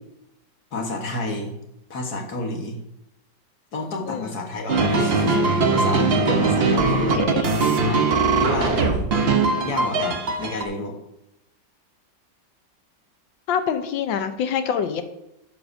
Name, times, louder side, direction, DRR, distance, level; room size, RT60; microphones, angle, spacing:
voice 1, 0.7-1.5 1.9-2.8 3.7-7.2 7.8-8.1 8.4-9.1 9.6-11.0, left 2 dB, 55° left, 2 dB, 1.8 m, -30 dB
sound 1, 4.7-10.6, right 4 dB, 45° right, 0.8 m, -20 dB
voice 2, 6.6-7.5 13.5-15.0, left 7 dB, 80° left, 9 dB, 1.5 m, -26 dB
12.0 x 9.6 x 2.7 m, 0.86 s
omnidirectional pair, 2.0 m